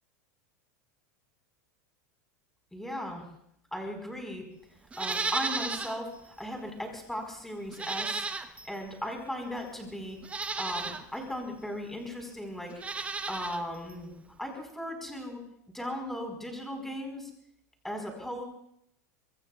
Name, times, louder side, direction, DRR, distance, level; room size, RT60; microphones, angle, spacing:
voice 1, 2.7-3.2 3.7-4.5 5.0-8.3 8.7-10.2 10.6-14.1 14.4-15.4 15.7-17.3 17.8-18.4, left 1 dB, 5° left, 3 dB, 4.6 m, -37 dB
Livestock farm animals working animals, 4.9-6.0 6.4-6.5 7.7-8.8 9.6-9.7 10.2-11.0 12.7-13.6 13.9-14.0, right 4 dB, 15° right, 0.9 m, -34 dB
25.0 x 22.5 x 2.4 m, 0.73 s
supercardioid pair, 135°, 9 cm